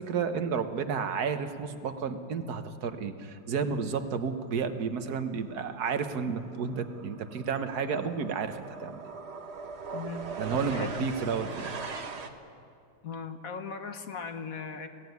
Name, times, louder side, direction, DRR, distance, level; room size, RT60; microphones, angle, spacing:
voice 1, 0.0-9.0 10.4-11.8, right 6 dB, 60° right, 9 dB, 1.6 m, -31 dB
sound 1, 5.5-5.7 6.0-12.3, right 4 dB, 40° right, 1.3 m, -40 dB
voice 2, 9.9-10.3 10.7-10.9 13.0-14.9, left 5 dB, 50° left, 8 dB, 1.5 m, -38 dB
22.5 x 16.5 x 9.5 m, 2.5 s
omnidirectional pair, 2.0 m